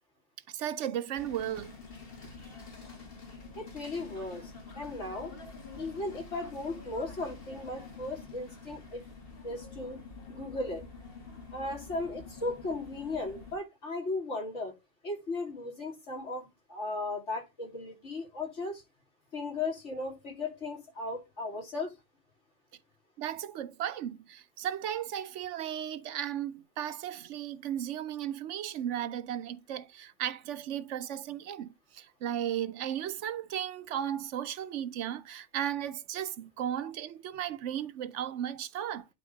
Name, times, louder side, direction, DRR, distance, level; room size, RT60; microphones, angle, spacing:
voice 1, 0.5-1.7 23.2-39.1, right 10 dB, 75° right, 0.9 m, -35 dB
sound 1, 1.2-13.6, left 4 dB, 50° left, 2.2 m, -47 dB
voice 2, 3.5-5.3 5.8-9.0 9.4-10.0 10.3-10.8 11.5-14.8 15.0-18.8 19.3-22.0, left 2 dB, 65° left, 3.1 m, -36 dB
10.5 x 3.8 x 3.9 m
omnidirectional pair, 1.3 m